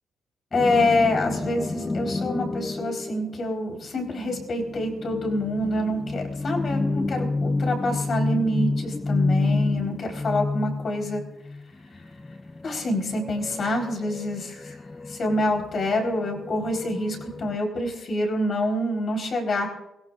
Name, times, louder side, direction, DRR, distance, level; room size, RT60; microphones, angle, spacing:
voice 1, 0.5-11.2 12.6-14.7 15.1-19.7, left 1 dB, 50° left, 2 dB, 4.1 m, -26 dB
sound 1, 0.5-17.6, left 3 dB, 20° left, 0.7 m, -30 dB
23.0 x 17.0 x 2.5 m, 0.86 s
cardioid pair, 85°, 0 cm